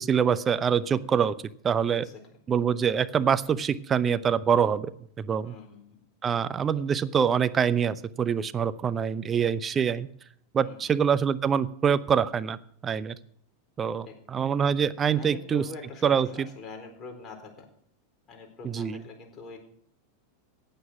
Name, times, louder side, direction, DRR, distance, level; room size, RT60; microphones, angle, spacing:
voice 1, 0.0-1.4 1.6-2.1 2.5-4.9 5.2-5.5 6.2-10.1 10.5-12.6 12.8-13.2 13.8-15.6 16.0-16.5 18.6-19.0, right 7 dB, 25° right, 14 dB, 0.7 m, -25 dB
voice 2, 5.4-6.0 10.6-10.9 14.1-14.2 15.1-17.7 18.3-19.6, left 3 dB, 25° left, 2 dB, 4.1 m, -44 dB
15.5 x 9.2 x 6.2 m, 0.64 s
figure-of-eight pair, 90°, 0 cm